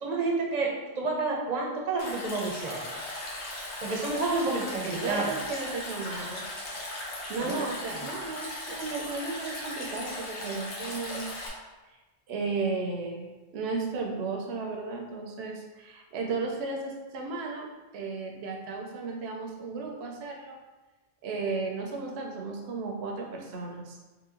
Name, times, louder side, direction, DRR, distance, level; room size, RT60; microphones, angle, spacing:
voice 1, 0.0-2.8 3.8-5.3 7.4-7.6, right 3 dB, 45° right, -1 dB, 0.7 m, -29 dB
Stream, 2.0-11.5, left 1 dB, 90° left, 1.1 m, -38 dB
voice 2, 5.0-6.4 7.3-11.5 11.9-12.0 12.3-20.6 21.2-24.0, right 3 dB, 75° right, 1 dB, 0.8 m, -34 dB
3.0 x 2.9 x 3.6 m, 1.2 s
omnidirectional pair, 1.1 m